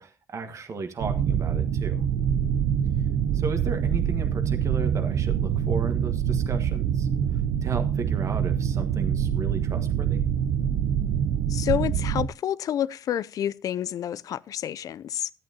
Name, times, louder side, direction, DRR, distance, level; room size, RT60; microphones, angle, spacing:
voice 1, 0.0-2.0 3.3-10.2, right 4 dB, 50° right, 1.5 m, -35 dB
sound 1, 1.0-12.3, right 8 dB, 80° right, 0.6 m, -25 dB
voice 2, 11.5-15.3, left 10 dB, 65° left, 0.4 m, -29 dB
13.0 x 8.6 x 2.8 m
supercardioid pair, 65°, 7 cm